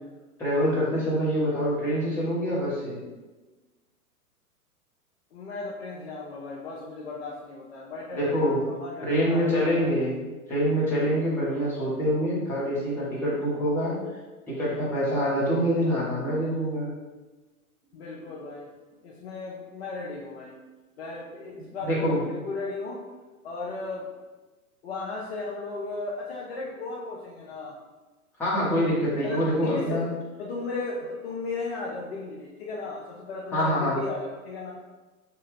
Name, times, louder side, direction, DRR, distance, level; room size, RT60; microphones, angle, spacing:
voice 1, 0.4-3.0 8.1-8.6 9.0-13.9 14.5-16.9 21.8-22.2 28.4-30.1 33.5-34.0, equal, 5° left, -9 dB, 0.8 m, -25 dB
voice 2, 5.3-9.9 17.9-18.7 19.0-20.5 21.0-23.0 23.4-24.1 24.8-27.7 29.2-30.0 30.4-34.7, left 3 dB, 45° left, -3 dB, 0.5 m, -35 dB
2.8 x 2.3 x 3.0 m, 1.2 s
figure-of-eight pair, 105°, 45 cm